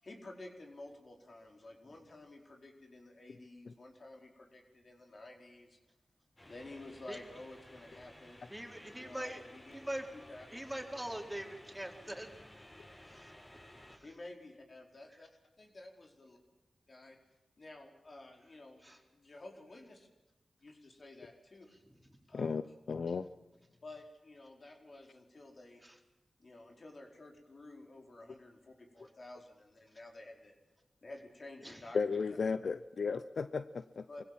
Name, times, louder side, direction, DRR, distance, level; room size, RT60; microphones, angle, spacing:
voice 1, 0.0-5.8 6.4-8.4 9.0-9.8 10.1-10.5 11.3-11.5 14.0-15.3 15.6-16.4 16.9-17.2 17.6-20.1 20.6-21.7 22.3-22.6 23.8-25.8 26.4-30.5 31.0-32.3 34.1-34.2, left 2 dB, 55° left, 2 dB, 4.9 m, -52 dB
sound 1, 6.4-14.0, left 1 dB, 25° left, 7.0 m, -56 dB
voice 2, 8.5-9.4 9.7-10.1 10.5-12.4 13.1-13.3 13.9-14.1 18.8-19.0 22.0-22.1 25.8-25.9 31.6-31.8, right 1 dB, 10° right, 3 dB, 4.2 m, -42 dB
voice 3, 22.9-23.3 31.9-34.1, left 5 dB, 75° left, 12 dB, 0.7 m, -34 dB
24.0 x 16.0 x 7.6 m, 1.1 s
cardioid pair, 40°, 0 cm